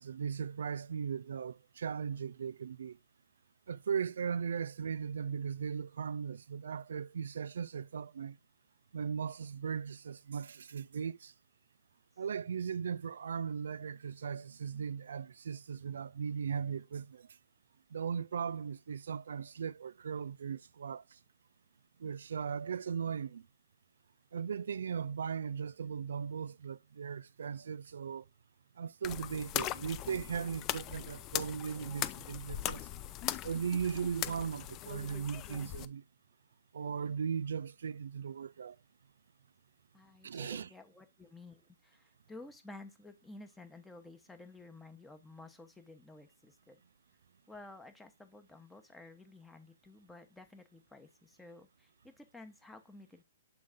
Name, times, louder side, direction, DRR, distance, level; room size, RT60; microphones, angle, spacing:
voice 1, 0.0-3.0 3.7-8.4 8.9-11.3 12.2-17.3 17.9-21.2 22.0-23.4 24.3-28.2 28.8-32.9 33.4-36.0 36.7-38.8 40.2-40.7, right 7 dB, 80° right, 0.3 m, -38 dB
sound 1, 29.0-35.8, left 13 dB, 20° left, 0.4 m, -39 dB
voice 2, 39.9-46.8 47.5-53.2, left 2 dB, 5° left, 0.8 m, -53 dB
7.5 x 3.9 x 3.5 m
hypercardioid pair, 165°, 0 cm